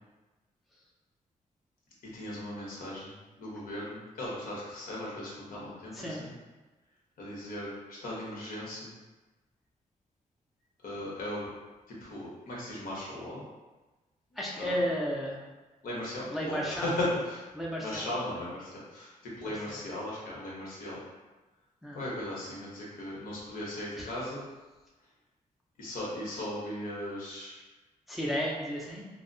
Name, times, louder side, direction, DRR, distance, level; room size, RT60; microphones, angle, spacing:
voice 1, 2.1-3.1 3.4-6.3 7.2-8.9 10.8-11.5 12.0-13.4 14.6-14.8 15.8-17.4 17.8-19.1 19.4-21.0 21.9-24.4 25.8-27.5, left 1 dB, 80° left, -5 dB, 0.8 m, -37 dB
voice 2, 14.4-15.4 16.3-16.9 17.5-18.1 19.4-19.8 21.8-22.0 24.0-24.1 28.1-29.0, equal, ahead, -4 dB, 0.4 m, -33 dB
2.7 x 2.0 x 2.6 m, 1.2 s
wide cardioid pair, 140°, 14 cm